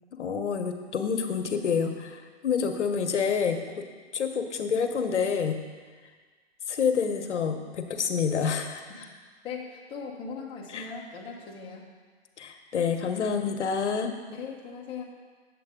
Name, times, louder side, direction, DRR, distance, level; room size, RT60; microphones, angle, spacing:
voice 1, 0.2-3.6 4.1-5.6 6.7-8.8 10.7-10.9 12.4-14.1, left 6 dB, 85° left, 6 dB, 1.0 m, -28 dB
voice 2, 9.4-11.9 14.3-15.0, left 5 dB, 15° left, -2 dB, 0.9 m, -39 dB
8.8 x 7.6 x 3.7 m, 1.5 s
hypercardioid pair, 145°, 34 cm